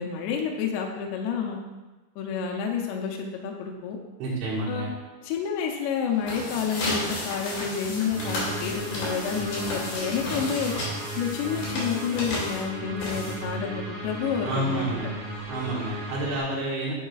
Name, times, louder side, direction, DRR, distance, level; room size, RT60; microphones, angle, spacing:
voice 1, 0.0-1.6 2.2-4.0 4.7-4.9 5.2-10.7 11.2-14.9, left 6 dB, 80° left, 1 dB, 2.7 m, -29 dB
voice 2, 4.2-4.9 14.4-15.1 15.5-16.9, right 1 dB, 85° right, -7 dB, 3.8 m, -29 dB
sound 1, 6.1-13.6, left 1 dB, 60° left, 3.8 m, -33 dB
sound 2, 8.1-16.4, right 1 dB, 30° right, 1.8 m, -36 dB
9.5 x 6.3 x 2.4 m, 1.2 s
omnidirectional pair, 5.1 m